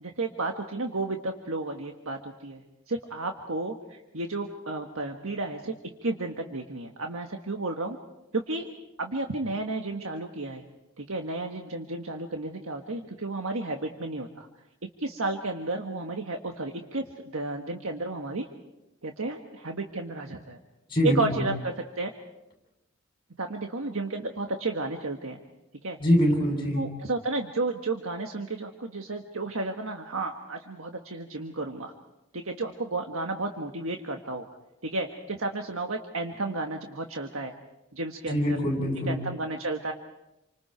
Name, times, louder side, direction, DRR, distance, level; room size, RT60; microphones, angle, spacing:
voice 1, 0.0-5.7 6.0-8.0 8.3-8.7 9.0-10.6 11.0-14.5 15.0-18.5 19.0-20.6 21.0-22.1 23.4-25.4 25.8-26.0 26.7-31.9 32.3-34.5 34.8-37.5 37.9-38.6 39.1-39.9, right 2 dB, 80° right, 3 dB, 1.6 m, -32 dB
voice 2, 20.9-21.4 26.0-26.8 38.3-39.2, equal, 25° left, 0 dB, 7.9 m, -24 dB
29.0 x 25.0 x 4.6 m, 0.93 s
head